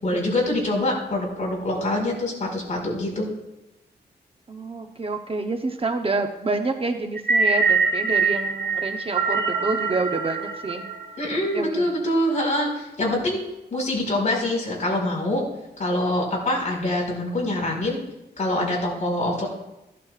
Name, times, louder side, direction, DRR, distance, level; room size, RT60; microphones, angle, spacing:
voice 1, 0.0-3.3 11.2-13.4 13.7-15.4 15.8-18.0 18.4-19.5, left 1 dB, 45° left, -2 dB, 5.0 m, -25 dB
voice 2, 4.5-10.8 11.5-11.9, right 3 dB, 35° right, 4 dB, 0.9 m, -28 dB
sound 1, 7.2-11.5, right 4 dB, 75° right, 1.7 m, -24 dB
16.0 x 11.5 x 2.5 m, 0.92 s
wide cardioid pair, 125°, 17 cm